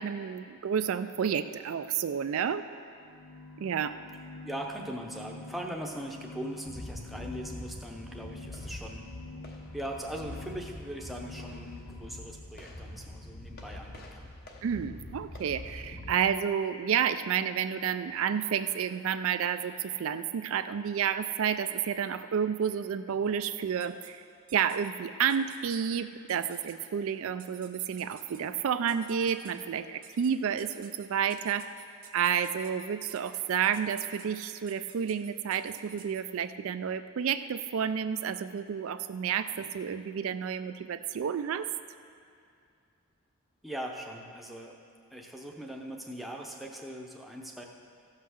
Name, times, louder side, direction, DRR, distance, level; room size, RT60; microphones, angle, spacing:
voice 1, 0.0-2.6 3.6-4.0 14.6-24.2 24.5-31.8 32.1-41.7, right 8 dB, 70° right, 10 dB, 0.3 m, -30 dB
sound 1, 2.9-12.5, left 2 dB, 60° left, 0.7 m, -48 dB
voice 2, 4.4-9.1 9.7-14.3 43.6-44.8 45.1-47.7, right 1 dB, ahead, 0 dB, 0.7 m, -40 dB
sound 2, 6.7-16.1, left 1 dB, 45° left, 1.0 m, -44 dB
sound 3, 23.8-24.1 24.5-24.9 25.3-25.9 26.3-26.9 27.4-28.4 28.9-29.6 30.0-30.3 30.6-36.2, right 9 dB, 40° right, 0.7 m, -51 dB
15.0 x 5.7 x 6.3 m, 2.4 s
head